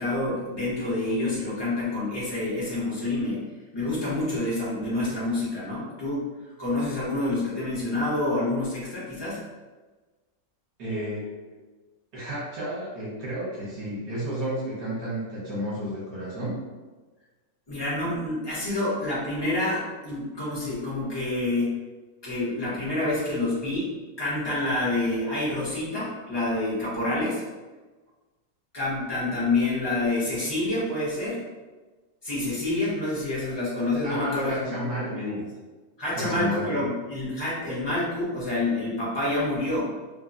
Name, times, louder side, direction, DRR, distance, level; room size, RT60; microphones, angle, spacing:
voice 1, 0.0-3.4 3.7-6.3 6.6-9.4 17.7-21.8 22.2-23.9 24.2-27.4 28.7-31.4 32.2-35.4 36.0-39.9, left 2 dB, 20° left, -9 dB, 0.8 m, -28 dB
voice 2, 10.8-11.3 12.1-16.6 34.0-35.4 36.1-36.8, equal, 60° right, -7 dB, 1.6 m, -32 dB
3.5 x 2.1 x 2.6 m, 1.3 s
omnidirectional pair, 1.8 m